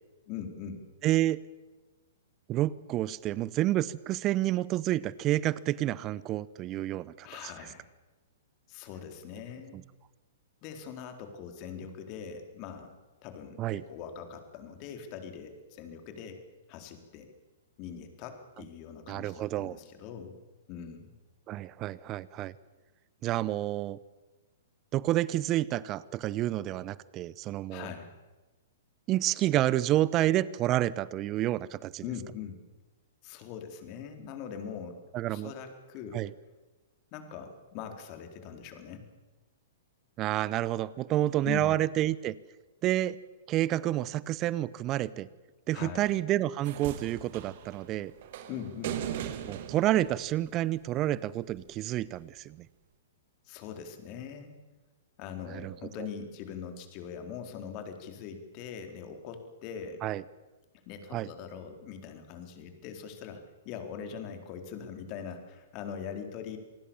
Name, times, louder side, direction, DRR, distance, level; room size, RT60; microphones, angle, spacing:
voice 1, 0.3-0.8 7.2-7.9 8.7-9.8 10.6-12.9 13.2-16.4 16.7-17.3 17.8-20.4 20.7-21.1 27.7-28.1 32.0-32.6 33.2-35.0 35.2-36.3 37.1-39.1 41.4-41.8 45.7-46.1 48.5-49.0 53.4-54.6 55.2-60.0 60.9-66.6, left 7 dB, 40° left, 6 dB, 4.1 m, -42 dB
voice 2, 1.0-1.4 2.5-7.3 9.7-9.8 13.6-13.8 19.1-19.8 21.5-22.5 23.2-24.0 24.9-27.9 29.1-32.0 35.1-35.5 36.1-36.3 40.2-42.3 42.8-43.2 43.5-45.3 45.7-48.1 49.5-52.6 55.5-55.7 56.0-56.1 60.0-60.2 61.1-61.3, right 14 dB, 30° right, 20 dB, 0.8 m, -29 dB
sound 1, 46.6-51.0 52.1-52.2, right 10 dB, 55° right, 2.3 m, -39 dB
27.5 x 19.5 x 7.2 m, 1.2 s
hypercardioid pair, 115°, 0 cm